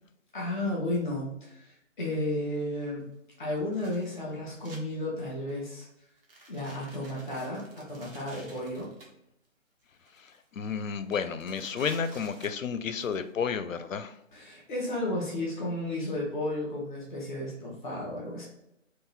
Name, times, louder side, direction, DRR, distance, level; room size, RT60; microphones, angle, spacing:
voice 1, 0.3-3.1 3.4-6.1 6.5-8.9 14.3-18.4, left 1 dB, 5° right, -4 dB, 0.6 m, -33 dB
sound 1, 3.6-4.8 5.3-5.6 6.2-9.1 9.8-10.4 10.7-10.8 11.1-13.2, right 2 dB, 45° right, 1.2 m, -52 dB
voice 2, 10.5-14.1, left 6 dB, 80° left, 11 dB, 0.6 m, -31 dB
3.8 x 2.6 x 4.2 m, 0.83 s
figure-of-eight pair, 160°, 39 cm